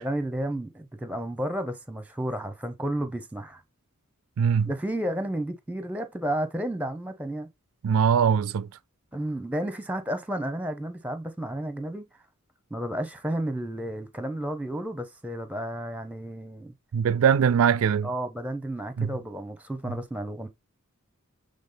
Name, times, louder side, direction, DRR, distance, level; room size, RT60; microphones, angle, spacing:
voice 1, 0.0-3.6 4.6-7.5 9.1-12.1 12.7-16.7 18.0-20.5, right 1 dB, 5° right, 0.8 m, -32 dB
voice 2, 4.4-4.7 7.8-8.7 16.9-18.1 19.0-19.1, right 7 dB, 70° right, 0.3 m, -21 dB
7.2 x 3.5 x 3.9 m
head